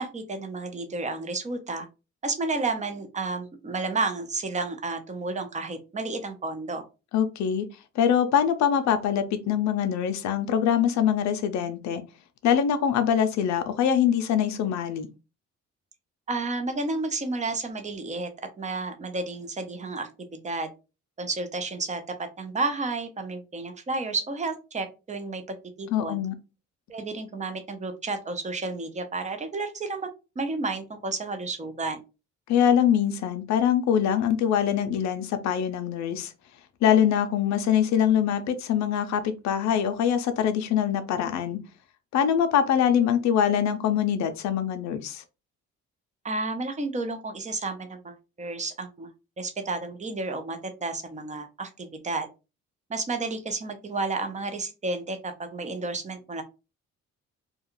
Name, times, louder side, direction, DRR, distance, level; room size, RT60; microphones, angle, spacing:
voice 1, 0.0-1.9 2.2-6.8 16.3-18.3 18.6-20.7 21.2-26.2 26.9-30.1 30.4-32.0 46.2-49.1 49.4-52.3 52.9-56.4, right 3 dB, 25° right, 0.6 m, -31 dB
voice 2, 7.1-7.6 8.0-12.0 12.4-15.1 25.9-26.3 32.5-36.3 36.8-41.6 42.1-45.2, left 9 dB, 65° left, 0.5 m, -23 dB
2.4 x 2.2 x 2.9 m
cardioid pair, 90°, 30 cm